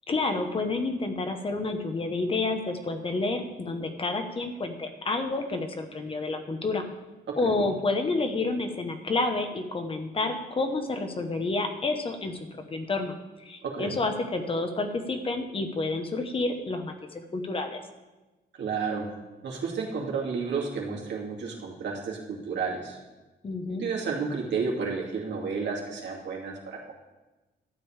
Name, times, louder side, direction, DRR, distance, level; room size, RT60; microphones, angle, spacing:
voice 1, 0.1-6.8 7.4-12.4 12.7-17.8 23.4-23.8, left 3 dB, 30° left, 6 dB, 1.0 m, -29 dB
voice 2, 7.3-7.7 13.6-14.0 18.6-19.1 19.4-23.0 23.8-26.9, right 5 dB, 75° right, -1 dB, 2.6 m, -31 dB
12.0 x 5.3 x 8.9 m, 1.1 s
wide cardioid pair, 170°, 18 cm